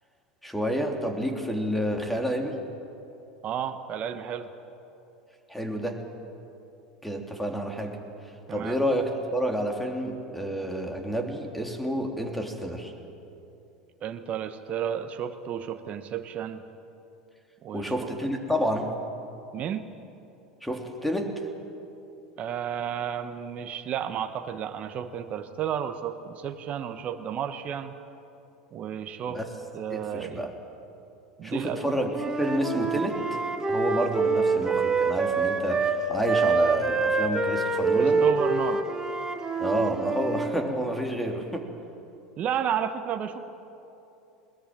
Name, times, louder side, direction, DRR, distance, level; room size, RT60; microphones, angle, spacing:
voice 1, 0.4-2.6 5.5-6.0 7.0-8.0 8.5-12.9 17.7-18.9 20.6-21.3 29.3-29.4 29.9-30.5 31.4-33.2 33.7-38.2 39.6-41.7, equal, 5° left, 3 dB, 3.4 m, -29 dB
voice 2, 3.4-4.5 8.5-8.8 14.0-16.6 17.6-18.1 19.5-19.9 22.4-27.9 28.7-29.4 29.7-30.4 31.4-32.0 37.9-38.9 42.4-43.4, right 9 dB, 40° right, 8 dB, 1.3 m, -32 dB
Wind instrument woodwind instrument, 32.1-36.0 36.2-40.6, right 4 dB, 15° right, 2.2 m, -26 dB
21.0 x 20.5 x 9.1 m, 2.8 s
hypercardioid pair, 80°, 4 cm